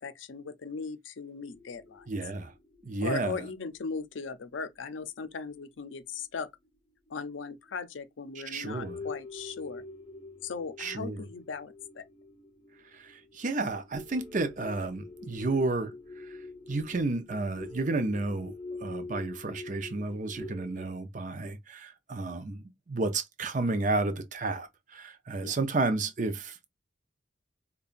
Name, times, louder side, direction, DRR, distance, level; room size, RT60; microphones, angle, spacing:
voice 1, 0.0-2.0 3.0-6.5 7.1-9.8 10.4-12.0 25.4-25.5, left 5 dB, 80° left, 0.5 m, -38 dB
sound 1, 1.5-5.5 5.9-6.0 7.1-7.2 7.7-7.8 8.3-8.5 8.7-20.9, left 3 dB, 25° left, 0.5 m, -45 dB
voice 2, 2.1-2.5 2.8-3.5 8.3-9.1 10.8-11.2 12.9-15.9 16.2-16.4 16.7-18.5 18.8-26.7, right 3 dB, 40° right, 0.5 m, -32 dB
5.2 x 2.3 x 2.4 m
head